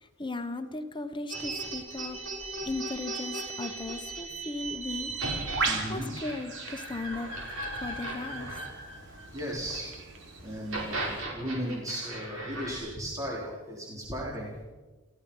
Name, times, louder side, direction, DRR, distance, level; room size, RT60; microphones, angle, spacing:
voice 1, 0.0-2.2 2.6-5.1 5.9-7.3 7.8-8.6, left 2 dB, 25° left, 7 dB, 1.2 m, -37 dB
sound 1, 1.3-9.8 10.5-12.7, right 2 dB, 90° right, 6.5 m, -37 dB
Bird, 4.8-11.2, right 4 dB, 65° right, 3.2 m, -38 dB
voice 2, 5.6-6.1 9.3-9.9 10.4-14.5, equal, 15° right, -4 dB, 4.1 m, -36 dB
30.0 x 15.5 x 5.7 m, 1.2 s
head